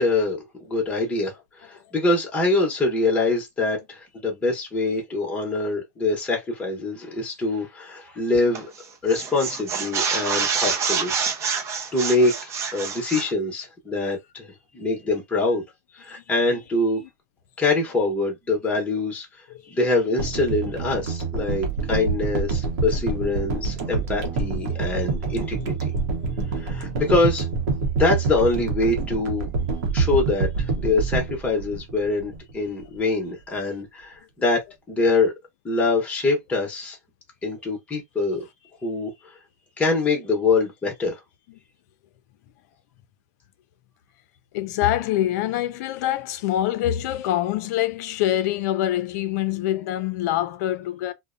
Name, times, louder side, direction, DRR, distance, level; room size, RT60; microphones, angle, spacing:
voice 1, 0.0-8.7 9.0-11.1 11.9-15.6 15.9-17.0 17.6-19.3 19.7-25.9 26.5-27.4 27.9-29.5 29.9-34.6 34.9-35.3 35.6-37.0 37.4-38.5 38.8-39.3 39.8-41.2, left 3 dB, 15° left, 0.8 m, -24 dB
sound 1, 8.5-8.8 9.1-13.3, right 5 dB, 30° right, 0.6 m, -26 dB
sound 2, 20.2-32.5 32.8-32.9, right 4 dB, 70° right, 0.8 m, -26 dB
voice 2, 44.5-51.1, left 13 dB, 65° left, 0.4 m, -25 dB
2.5 x 2.1 x 2.5 m
supercardioid pair, 130°, 10 cm